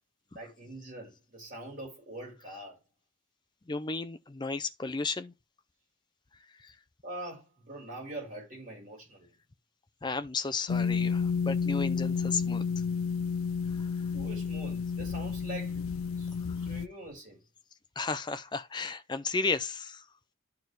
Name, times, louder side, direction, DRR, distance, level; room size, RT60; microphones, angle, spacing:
voice 1, 0.3-2.8 7.0-9.3 14.1-15.8 16.2-16.3 16.6-17.4, right 1 dB, 40° right, 4.3 m, -43 dB
voice 2, 3.7-5.3 6.6-6.7 10.0-12.6 13.8-13.9 18.0-20.0, left 4 dB, 20° left, 0.4 m, -33 dB
sound 1, 10.7-16.9, left 5 dB, 90° left, 0.5 m, -31 dB
12.0 x 4.6 x 3.1 m
head